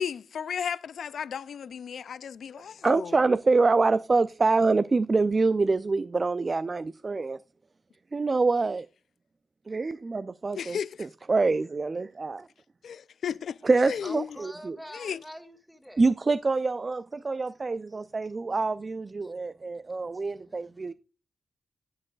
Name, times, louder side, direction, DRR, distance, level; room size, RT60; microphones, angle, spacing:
voice 1, 0.0-3.1 10.6-10.9 12.8-13.6 13.8-14.3 14.9-15.2, left 7 dB, 75° left, 0.3 m, -34 dB
voice 2, 2.8-7.4 8.1-8.9 9.7-12.5 13.6-14.8 16.0-20.9, right 3 dB, 40° right, 0.3 m, -26 dB
voice 3, 14.0-16.0 17.9-18.0 18.5-18.6 19.2-20.9, equal, ahead, 1.7 m, -47 dB
11.0 x 8.7 x 2.3 m
supercardioid pair, 50°, 0 cm